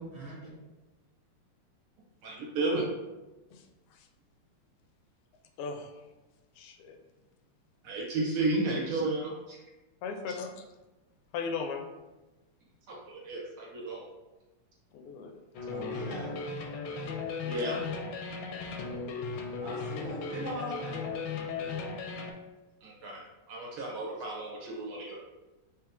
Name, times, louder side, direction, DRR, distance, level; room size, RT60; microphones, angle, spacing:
voice 1, 0.1-0.5 15.7-16.4 19.6-21.2, equal, 40° right, -6 dB, 1.8 m, -40 dB
voice 2, 2.2-2.8 7.8-9.6 12.9-14.1 17.4-17.8 22.8-23.2 23.5-25.2, right 2 dB, 75° right, -3 dB, 2.0 m, -33 dB
voice 3, 6.6-7.0 10.0-10.5 11.3-11.9 14.9-15.3, left 5 dB, 90° left, 5 dB, 1.5 m, -36 dB
sound 1, 15.5-22.3, left 4 dB, 75° left, 1.1 m, -36 dB
4.7 x 2.9 x 3.5 m, 1.1 s
omnidirectional pair, 2.4 m